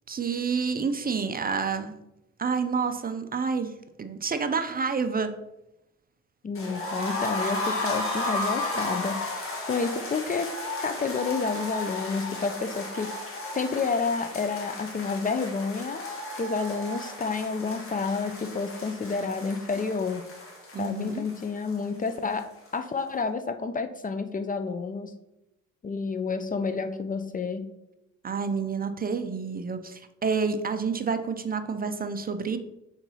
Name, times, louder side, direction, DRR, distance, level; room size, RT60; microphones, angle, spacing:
voice 1, 0.1-1.9 2.4-5.3 20.7-21.2 28.2-32.6, right 5 dB, 30° right, 9 dB, 0.5 m, -29 dB
voice 2, 6.4-10.5 10.8-16.0 16.4-20.2 20.8-25.1 25.8-27.7, left 4 dB, 30° left, 9 dB, 0.5 m, -30 dB
sound 1, 6.5-22.4 22.7-22.8 23.1-23.2, left 2 dB, 45° left, 1.8 m, -34 dB
4.4 x 3.9 x 5.5 m, 0.88 s
cardioid pair, 90°, 30 cm